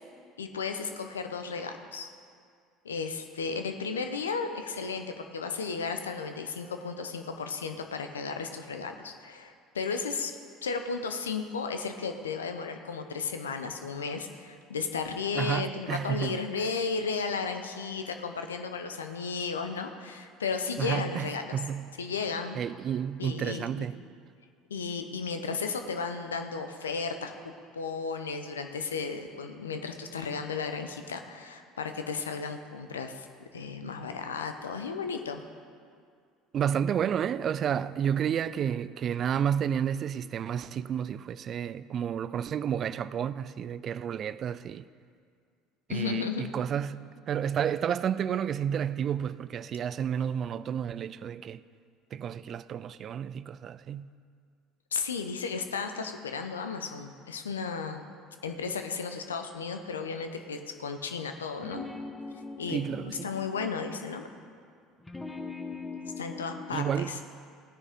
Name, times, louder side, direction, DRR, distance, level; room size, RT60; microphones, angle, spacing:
voice 1, 0.4-2.1 2.8-10.3 10.6-21.6 22.0-22.6 23.2-23.9 24.7-33.3 33.5-35.4 45.9-46.5 54.9-58.0 58.4-61.9 62.6-64.3 66.0-67.2, left 5 dB, 85° left, 0.7 m, -34 dB
voice 2, 15.3-16.4 20.8-22.0 22.6-24.0 36.5-44.9 45.9-51.6 52.1-54.1 62.7-63.3 66.7-67.2, right 8 dB, 45° right, 0.4 m, -31 dB
sound 1, 61.6-64.0 65.0-66.8, left 3 dB, 10° left, 1.0 m, -41 dB
17.5 x 9.8 x 3.6 m
figure-of-eight pair, 65°, 0 cm